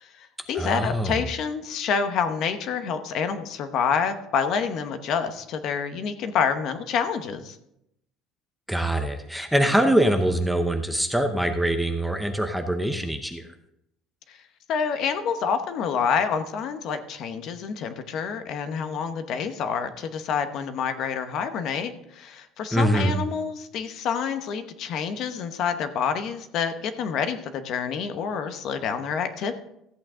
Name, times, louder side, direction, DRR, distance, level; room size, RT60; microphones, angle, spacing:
voice 1, 0.0-7.6 14.3-14.4 14.7-29.6, left 6 dB, 45° left, 9 dB, 0.9 m, -28 dB
voice 2, 0.5-1.2 8.7-13.4 22.7-23.2, right 1 dB, ahead, 6 dB, 0.7 m, -23 dB
14.0 x 8.5 x 3.7 m, 0.79 s
cardioid pair, 170°, 0 cm